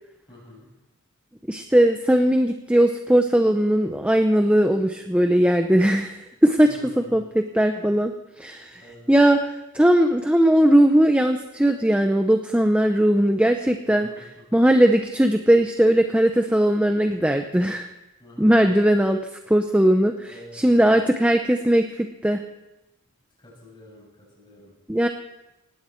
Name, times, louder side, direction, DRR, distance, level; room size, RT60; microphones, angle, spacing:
voice 1, 0.3-0.7 6.7-7.3 7.7-7.9 8.6-9.1 13.9-14.7 18.2-18.9 20.3-21.0 23.4-24.7, left 1 dB, 25° left, -5 dB, 7.6 m, -47 dB
voice 2, 1.5-6.7 7.0-8.1 8.4-8.8 9.1-14.1 14.5-17.9 18.4-19.2 19.5-22.4 24.9-25.1, right 1 dB, 5° right, 5 dB, 0.7 m, -19 dB
19.5 x 15.5 x 4.5 m, 0.95 s
head